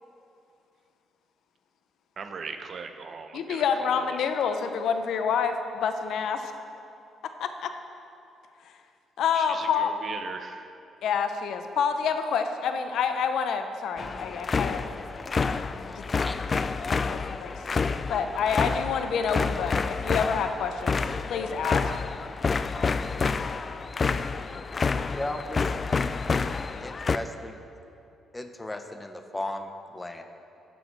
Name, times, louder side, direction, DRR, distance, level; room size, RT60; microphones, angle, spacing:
voice 1, 2.2-4.1 9.3-10.7, right 5 dB, 50° right, 7 dB, 0.7 m, -39 dB
voice 2, 3.3-6.5 7.4-7.7 9.2-9.9 11.0-14.8 16.0-16.3 16.9-17.5 18.1-21.0 21.3-21.8, left 6 dB, 75° left, 7 dB, 0.6 m, -28 dB
sound 1, 14.0-27.2, left 4 dB, 35° left, 0.3 m, -28 dB
voice 3, 15.9-16.4 25.1-25.7 26.8-27.6 28.3-30.2, left 1 dB, 15° left, 7 dB, 0.7 m, -36 dB
11.5 x 6.3 x 4.6 m, 2.6 s
cardioid pair, 90°, 0 cm